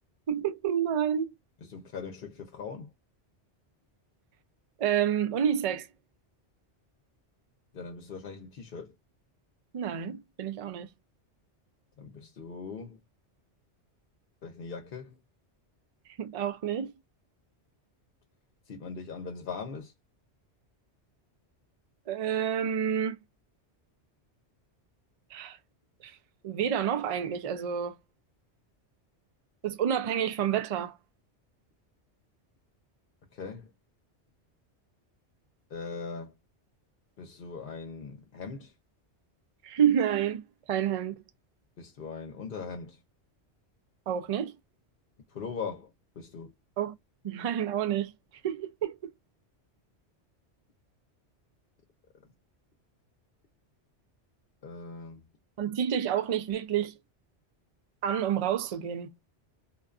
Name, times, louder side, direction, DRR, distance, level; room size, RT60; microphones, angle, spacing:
voice 1, 0.3-1.3 4.8-5.9 9.7-10.9 16.2-16.9 22.1-23.2 25.3-25.6 26.0-26.2 26.4-28.0 29.6-31.0 39.6-41.1 44.1-44.6 46.8-46.9 47.2-48.1 48.4-49.1 55.6-56.9 58.0-59.1, right 9 dB, 70° right, 0.3 m, -29 dB
voice 2, 1.7-2.9 7.7-8.9 12.0-13.0 14.4-15.2 18.7-19.9 33.3-33.7 35.7-36.3 37.2-38.7 41.8-43.0 45.3-45.9 46.2-46.5 54.6-55.2, left 5 dB, 55° left, 0.8 m, -40 dB
2.5 x 2.3 x 2.3 m
omnidirectional pair, 1.2 m